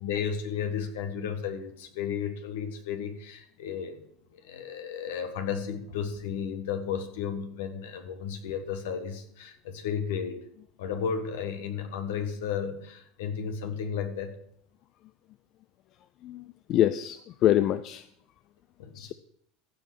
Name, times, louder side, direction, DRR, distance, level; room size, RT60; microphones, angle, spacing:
voice 1, 0.0-4.0 4.3-10.4 10.8-14.4 18.8-19.1, left 7 dB, 80° left, 7 dB, 1.5 m, -33 dB
voice 2, 16.2-18.0 18.9-19.1, left 12 dB, 55° left, 13 dB, 0.4 m, -25 dB
15.5 x 5.2 x 6.0 m, 0.69 s
hypercardioid pair, 90°, 0 cm